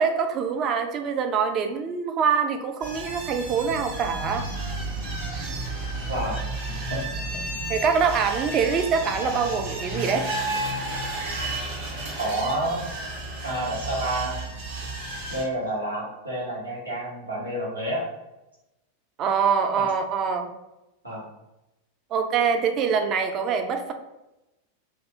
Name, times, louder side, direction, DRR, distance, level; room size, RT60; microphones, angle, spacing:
voice 1, 0.0-4.5 7.7-10.3 19.2-20.5 22.1-23.9, right 6 dB, 30° right, 6 dB, 0.3 m, -24 dB
sound 1, 2.8-15.4, right 2 dB, 50° right, 0.8 m, -32 dB
voice 2, 6.1-6.6 6.9-7.0 7.3-7.6 12.2-13.0 13.4-14.4 15.3-18.1 19.8-19.9 21.0-21.3, right 1 dB, 80° right, -5 dB, 0.9 m, -29 dB
2.6 x 2.2 x 2.7 m, 0.95 s
figure-of-eight pair, 90°, 0 cm